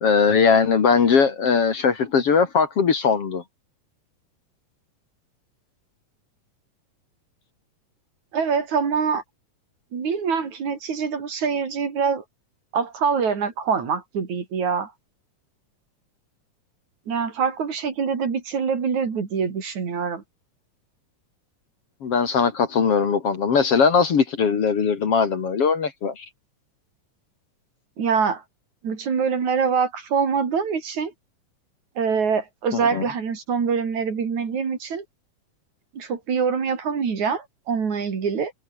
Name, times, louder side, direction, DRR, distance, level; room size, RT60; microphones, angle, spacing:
voice 1, 0.0-3.4 22.0-26.3 32.7-33.1, left 5 dB, 50° left, 2.9 m, -20 dB
voice 2, 8.3-9.2 9.9-12.2 12.7-14.9 17.1-20.2 28.0-28.4 28.8-31.1 32.0-35.0 35.9-38.5, right 6 dB, 65° right, 4.7 m, -24 dB
omnidirectional pair, 3.7 m